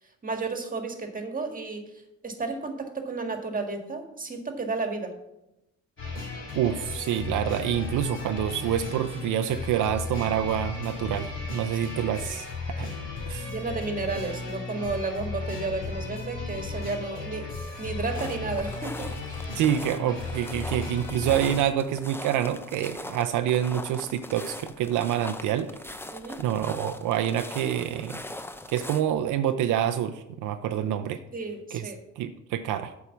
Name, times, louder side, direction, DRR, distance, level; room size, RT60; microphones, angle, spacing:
voice 1, 0.2-1.8 2.2-5.1 12.0-12.1 13.4-19.1 26.1-26.4 31.3-32.0, right 3 dB, 30° right, 4 dB, 1.6 m, -32 dB
sound 1, 6.0-21.6, left 3 dB, 40° left, 3.0 m, -35 dB
voice 2, 6.6-12.9 13.3-13.5 19.5-25.7 26.4-28.2 28.7-31.2 31.7-31.9 32.2-32.9, right 10 dB, 80° right, 9 dB, 0.6 m, -27 dB
sound 2, 17.4-29.0, left 1 dB, 10° left, 0.5 m, -41 dB
8.4 x 4.7 x 7.1 m, 0.91 s
cardioid pair, 90°, 30 cm